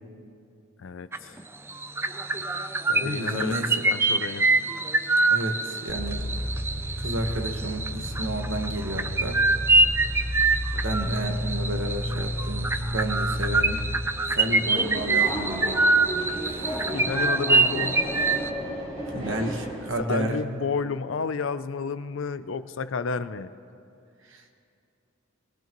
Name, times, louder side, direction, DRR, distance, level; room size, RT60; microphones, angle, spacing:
voice 1, 0.8-1.4 2.9-4.5 10.7-11.2 16.9-18.2 20.0-23.5, left 5 dB, 65° left, 13 dB, 0.5 m, -31 dB
sound 1, 1.1-1.4 1.7-18.5, right 3 dB, 10° right, 0.3 m, -25 dB
voice 2, 3.0-3.7 5.3-6.2 7.0-9.4 10.8-13.8 14.3-15.8 19.1-20.4 24.3-24.4, right 1 dB, 65° right, 4 dB, 1.3 m, -31 dB
sound 2, 5.9-13.9, equal, 90° left, 1.9 m, -31 dB
Subway metro underground, 14.3-19.9, equal, 35° right, 3.5 m, -33 dB
22.0 x 18.0 x 3.0 m, 2.5 s
head